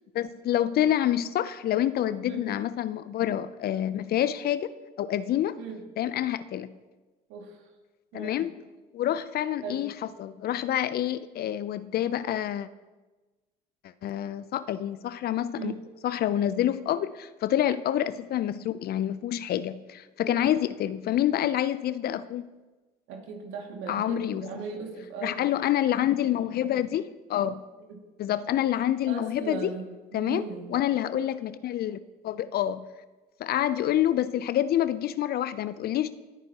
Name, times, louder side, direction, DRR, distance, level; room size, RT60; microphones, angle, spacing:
voice 1, 0.1-4.7 5.0-5.6 6.0-6.7 8.1-8.5 8.9-9.9 10.2-12.7 14.0-15.8 16.0-22.5 23.9-24.5 25.2-27.6 28.2-29.7 30.1-32.9 33.4-36.1, left 11 dB, 50° left, 16 dB, 0.6 m, -27 dB
voice 2, 7.3-7.7 8.1-8.4 9.6-9.9 15.6-15.8 20.2-20.4 23.1-25.5 27.9-28.0 29.1-29.8 30.1-30.7, right 5 dB, 70° right, 2 dB, 2.4 m, -38 dB
19.5 x 9.1 x 3.0 m, 1.2 s
hypercardioid pair, 65°, 21 cm